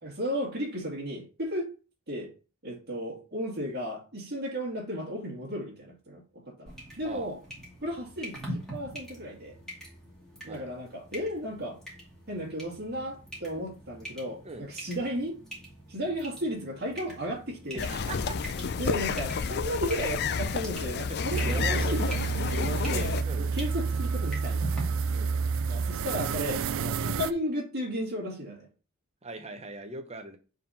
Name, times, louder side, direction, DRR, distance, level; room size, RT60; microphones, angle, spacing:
voice 1, 0.0-1.7 2.1-2.3 2.6-7.4 7.8-9.6 10.4-11.8 12.3-15.4 15.9-17.9 18.8-22.2 22.5-24.7 25.7-28.7, equal, 45° right, 2.1 m, -34 dB
sound 1, 6.7-24.8, right 1 dB, 5° left, 2.2 m, -44 dB
sound 2, 17.8-23.2, left 5 dB, 50° left, 0.4 m, -31 dB
voice 2, 17.9-18.4 21.2-22.0 23.3-23.4 25.1-25.3 29.2-30.4, right 2 dB, 30° right, 0.9 m, -40 dB
sound 3, 21.3-27.3, right 5 dB, 60° right, 0.4 m, -29 dB
4.6 x 3.9 x 5.6 m
head